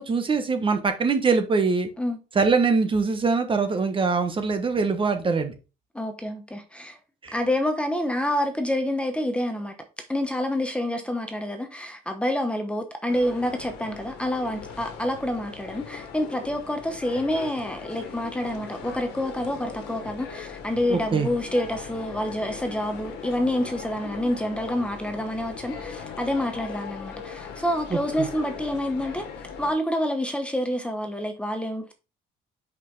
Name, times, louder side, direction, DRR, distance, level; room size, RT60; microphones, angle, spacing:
voice 1, 0.0-1.9 2.3-5.5 7.2-7.4 20.9-21.3 27.9-28.3, right 4 dB, 30° right, 1.2 m, -23 dB
voice 2, 5.9-7.0 7.3-9.7 10.1-29.2 29.6-31.9, left 1 dB, 5° left, 1.0 m, -28 dB
sound 1, 13.1-29.7, left 7 dB, 85° left, 1.6 m, -39 dB
5.5 x 5.1 x 4.0 m
cardioid pair, 110°, 17 cm